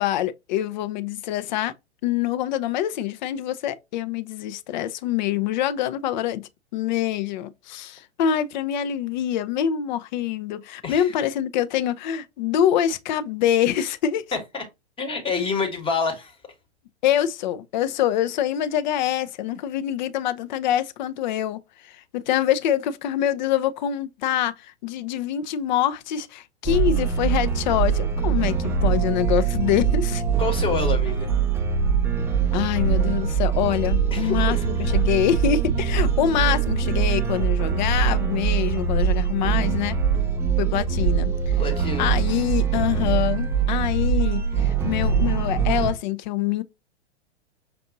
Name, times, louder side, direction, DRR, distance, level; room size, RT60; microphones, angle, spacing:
voice 1, 0.0-1.7 2.0-14.2 17.0-30.2 32.5-40.0 40.6-41.6 42.0-46.6, left 10 dB, 45° left, 0.5 m, -25 dB
voice 2, 10.8-11.1 14.3-14.6 15.0-16.4 30.4-31.3 34.1-34.6 41.6-42.1, left 4 dB, 15° left, 1.1 m, -27 dB
sound 1, 26.7-45.9, right 6 dB, 10° right, 0.4 m, -23 dB
5.9 x 2.5 x 2.6 m
figure-of-eight pair, 105°, 33 cm